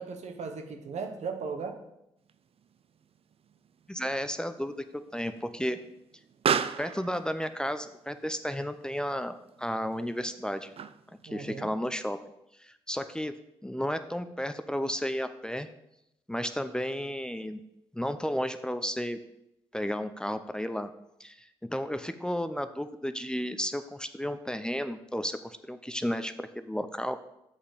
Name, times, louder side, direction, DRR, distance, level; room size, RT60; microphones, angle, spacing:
voice 1, 0.0-1.8 11.3-11.7, right 5 dB, 70° right, 6 dB, 1.1 m, -37 dB
Explosion, 2.3-11.3, right 7 dB, 55° right, 0.4 m, -37 dB
voice 2, 3.9-4.7 5.1-5.8 6.8-10.7 11.2-12.2 12.6-13.4 13.6-15.7 16.3-17.6 17.9-19.2 19.7-20.9 21.2-27.2, equal, 5° left, 10 dB, 0.6 m, -33 dB
6.5 x 5.8 x 5.0 m, 0.82 s
supercardioid pair, 50°, 12 cm